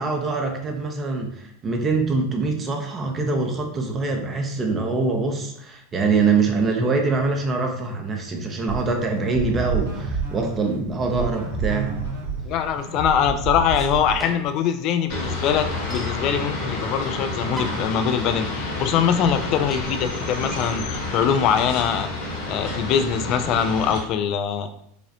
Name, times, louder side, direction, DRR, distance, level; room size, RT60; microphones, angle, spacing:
voice 1, 0.0-12.0, right 4 dB, 25° right, 3 dB, 0.6 m, -24 dB
sound 1, 8.7-14.5, right 5 dB, 85° right, 1.5 m, -29 dB
voice 2, 12.5-22.1 22.5-24.7, left 8 dB, 50° left, 9 dB, 0.3 m, -23 dB
sound 2, 13.7-14.7 15.0-15.1 15.3-16.2 17.0-17.1 17.4-18.0 18.5-18.6 18.9-19.0 19.4-19.9 20.4-23.3, right 1 dB, 5° left, 0.8 m, -39 dB
sound 3, 15.1-24.0, left 2 dB, 65° left, 1.4 m, -29 dB
4.8 x 2.0 x 2.8 m, 0.70 s
hypercardioid pair, 110°, 0 cm